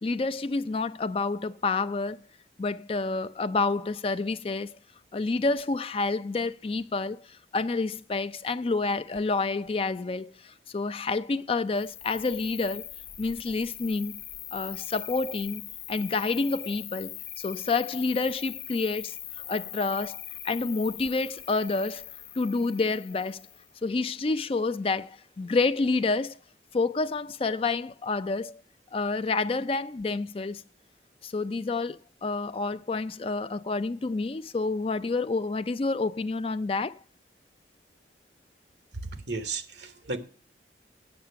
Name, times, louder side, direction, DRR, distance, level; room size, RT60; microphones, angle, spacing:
voice 1, 0.0-2.2 2.6-4.8 5.1-7.2 7.5-12.9 13.2-14.2 14.5-19.2 19.5-22.1 22.3-23.4 23.8-26.4 26.7-28.6 28.9-30.6 31.2-36.9, left 3 dB, 30° left, 0.4 m, -29 dB
Cricket, 11.7-23.7, left 11 dB, 75° left, 0.9 m, -41 dB
voice 2, 39.0-40.2, right 3 dB, 75° right, 1.1 m, -34 dB
8.8 x 6.7 x 6.8 m
head